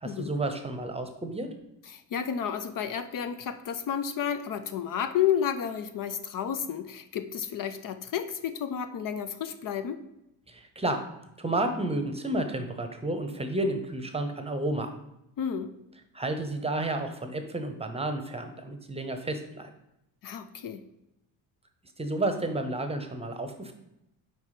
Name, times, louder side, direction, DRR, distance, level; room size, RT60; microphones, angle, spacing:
voice 1, 0.0-1.5 10.5-11.1 11.4-15.0 16.1-19.7 22.0-23.7, right 2 dB, 15° right, 6 dB, 0.8 m, -31 dB
voice 2, 1.9-10.0 15.4-15.7 20.2-20.8, left 8 dB, 50° left, 10 dB, 0.6 m, -31 dB
4.8 x 4.5 x 5.8 m, 0.85 s
cardioid pair, 90°, 42 cm